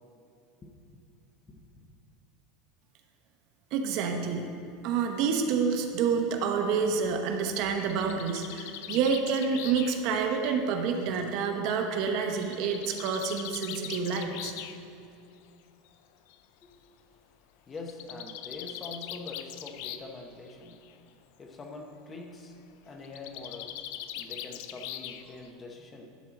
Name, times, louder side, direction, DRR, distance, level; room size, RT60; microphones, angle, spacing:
voice 1, 0.6-1.0 1.5-1.8 16.6-16.8 17.7-20.8 21.4-22.6 22.8-23.8 24.1-26.0, left 3 dB, 20° left, 2 dB, 1.0 m, -44 dB
voice 2, 3.7-4.5 4.8-14.5, right 5 dB, 50° right, 4 dB, 1.0 m, -28 dB
Bird, 7.6-11.3 12.4-14.8 15.9-16.0 16.3-16.4 16.6-16.7 17.8-20.2 20.5-20.9 23.0-25.5, left 11 dB, 65° left, 0.5 m, -41 dB
11.5 x 4.5 x 7.1 m, 2.6 s
supercardioid pair, 145°, 0 cm